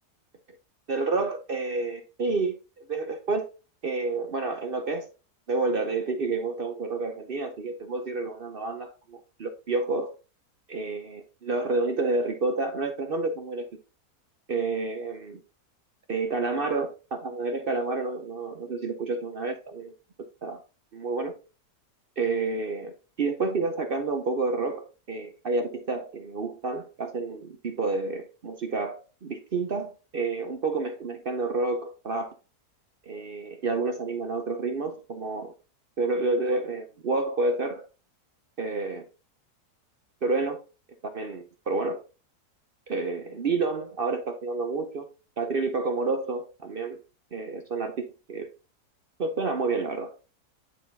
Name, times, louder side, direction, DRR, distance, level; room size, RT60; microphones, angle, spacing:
voice 1, 0.9-2.5 2.9-3.5 3.8-5.1 5.5-10.1 10.7-11.2 11.5-13.7 14.5-15.4 16.1-19.9 20.4-20.6 20.9-21.3 22.2-22.9 23.2-32.3 33.1-35.5 36.0-37.9 38.6-39.0 40.2-40.6 41.0-42.0 42.9-45.1 45.4-47.0 47.3-48.5 49.2-50.2, right 3 dB, 50° right, 0.7 m, -29 dB
9.3 x 4.2 x 2.7 m
omnidirectional pair, 1.7 m